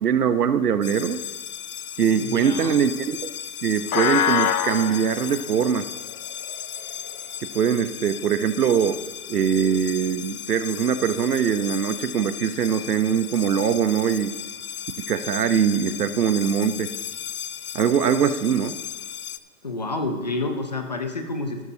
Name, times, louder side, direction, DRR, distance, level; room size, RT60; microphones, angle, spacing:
voice 1, 0.0-1.2 2.0-3.3 3.6-5.9 7.5-9.0 9.3-14.4 15.1-16.9 17.7-18.8, right 8 dB, 75° right, 12 dB, 0.9 m, -22 dB
sound 1, 0.8-19.4, left 9 dB, 70° left, 0.7 m, -32 dB
voice 2, 2.2-2.7 19.6-21.6, left 2 dB, 30° left, 5 dB, 0.7 m, -29 dB
13.5 x 12.5 x 2.8 m, 1.3 s
hypercardioid pair, 175°, 46 cm